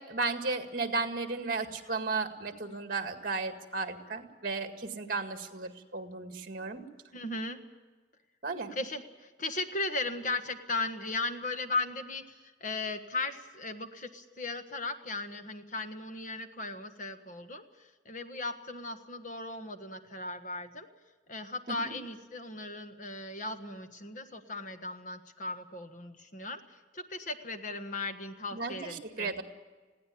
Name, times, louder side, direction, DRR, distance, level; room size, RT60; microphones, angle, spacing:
voice 1, 0.0-6.8 8.4-8.7 21.7-21.9 28.5-29.4, right 3 dB, 50° right, 6 dB, 2.0 m, -34 dB
voice 2, 7.1-7.6 8.7-20.9 21.3-29.3, left 2 dB, 45° left, 7 dB, 1.5 m, -37 dB
21.0 x 16.5 x 8.5 m, 1.3 s
head